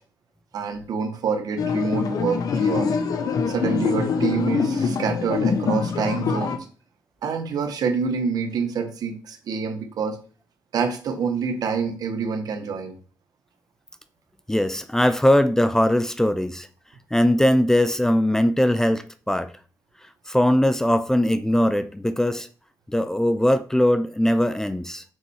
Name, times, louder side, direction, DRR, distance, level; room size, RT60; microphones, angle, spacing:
voice 1, 0.5-3.0 3.5-6.7 7.2-10.2 10.7-12.9, right 5 dB, 75° right, 1.3 m, -27 dB
sound 1, 1.6-6.6, left 5 dB, 70° left, 0.9 m, -24 dB
voice 2, 14.5-16.7 17.1-19.5 20.3-22.5 22.9-25.0, left 1 dB, 5° left, 0.5 m, -20 dB
6.3 x 4.3 x 4.7 m
cardioid pair, 95°, 7 cm